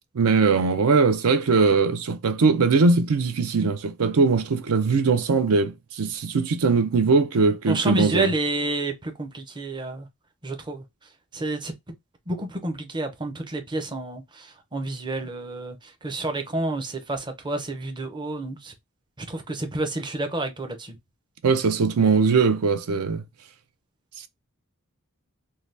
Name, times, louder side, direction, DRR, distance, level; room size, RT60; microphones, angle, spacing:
voice 1, 0.1-8.3 21.4-23.2, right 4 dB, 70° right, 0.5 m, -20 dB
voice 2, 7.7-10.1 10.4-10.8 11.3-11.7 12.3-18.7 19.2-21.0, right 2 dB, 20° right, 0.6 m, -29 dB
2.7 x 2.2 x 3.2 m
head